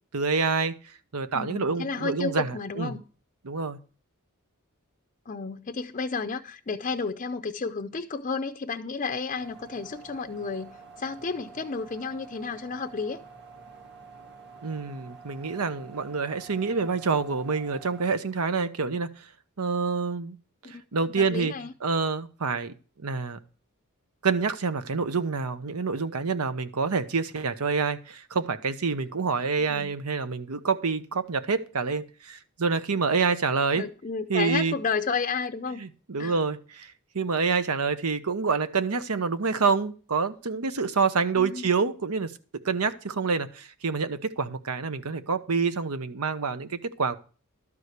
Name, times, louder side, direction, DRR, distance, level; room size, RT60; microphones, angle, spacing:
voice 1, 0.1-0.8 1.1-2.5 2.8-2.9 3.4-3.8 14.6-19.1 19.6-20.4 20.6-21.5 21.8-22.7 23.0-23.4 24.2-33.8 34.3-34.8 35.8-47.2, right 4 dB, 90° right, 0.9 m, -27 dB
voice 2, 1.3-3.0 5.3-13.2 20.6-20.8 21.1-21.7 29.6-29.9 33.7-35.8 36.2-36.4 41.4-41.7, left 4 dB, 35° left, 0.5 m, -32 dB
sound 1, 9.4-18.0, right 4 dB, 55° right, 2.3 m, -48 dB
12.5 x 4.9 x 8.2 m
head